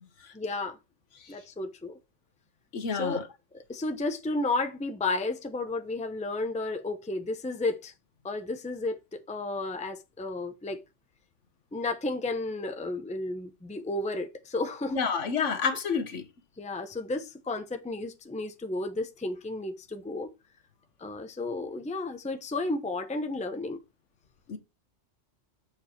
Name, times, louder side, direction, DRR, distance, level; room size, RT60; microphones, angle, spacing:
voice 1, 0.3-0.8 1.3-2.0 2.9-3.3 3.5-7.9 8.2-9.0 9.3-10.8 11.7-15.0 16.6-20.3 21.0-23.8, left 2 dB, 5° left, 0.7 m, -32 dB
voice 2, 2.7-3.2 14.9-16.2 24.5-24.6, left 5 dB, 70° left, 1.4 m, -28 dB
7.0 x 5.2 x 4.5 m
omnidirectional pair, 1.3 m